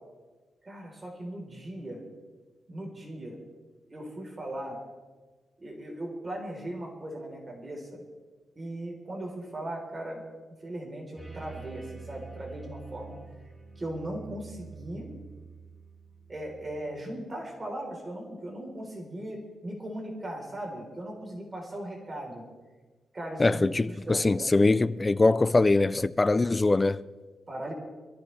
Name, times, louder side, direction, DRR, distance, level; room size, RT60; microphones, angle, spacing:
voice 1, 0.6-2.0 2.7-3.4 3.9-4.8 5.6-8.0 8.6-10.2 10.6-13.2 13.8-15.1 16.3-22.4 23.1-24.7 27.5-27.7, right 1 dB, 25° right, 3.7 m, -38 dB
sound 1, 11.2-16.8, right 5 dB, 5° right, 3.2 m, -46 dB
voice 2, 23.4-27.0, left 2 dB, 20° left, 0.4 m, -23 dB
22.5 x 14.5 x 3.3 m
wide cardioid pair, 115°, 0 cm